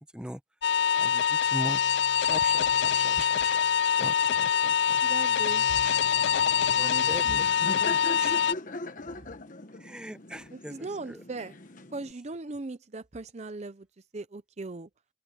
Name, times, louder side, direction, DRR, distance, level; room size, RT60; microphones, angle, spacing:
sound 1, 0.6-8.5, left 8 dB, 65° left, 0.3 m, -24 dB
voice 1, 1.0-3.6 4.0-5.0 5.8-6.0 6.6-7.3 8.2-8.4 9.8-10.7 11.1-11.2, equal, 5° right, 0.9 m, -40 dB
voice 2, 5.0-5.8 6.8-7.4 10.5-11.6 11.9-13.9 14.1-14.9, right 3 dB, 35° right, 0.6 m, -39 dB
Laughter, 5.8-12.1, left 2 dB, 45° left, 1.3 m, -41 dB
head